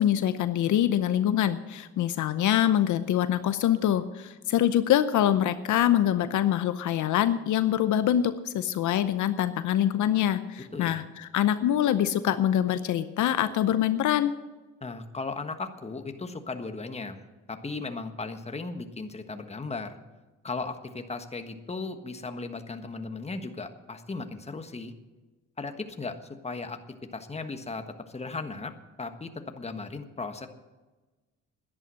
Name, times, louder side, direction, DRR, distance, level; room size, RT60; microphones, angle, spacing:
voice 1, 0.0-14.3, left 11 dB, 75° left, 12 dB, 0.8 m, -24 dB
voice 2, 10.7-11.0 14.8-20.0 20.4-24.9 25.6-26.2 26.4-26.8 27.1-30.5, left 3 dB, 20° left, 7 dB, 1.4 m, -36 dB
11.5 x 10.5 x 7.6 m, 1.2 s
cardioid pair, 90°, 30 cm